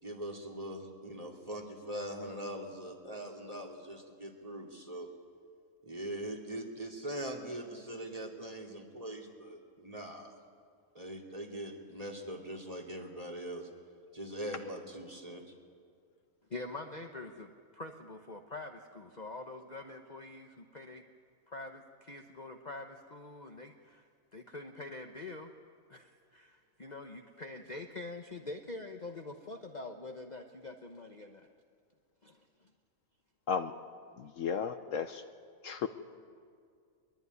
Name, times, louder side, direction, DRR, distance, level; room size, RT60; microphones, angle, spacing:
voice 1, 0.0-5.1 5.8-10.4 10.9-13.7 14.1-15.4, right 1 dB, 25° right, 2 dB, 2.8 m, -42 dB
voice 2, 16.5-21.0 21.5-25.5 25.9-31.5, left 2 dB, 35° left, 4 dB, 1.0 m, -45 dB
voice 3, 34.2-35.2 35.6-35.9, left 6 dB, 65° left, 9 dB, 1.1 m, -34 dB
22.5 x 22.0 x 9.6 m, 2.2 s
omnidirectional pair, 1.6 m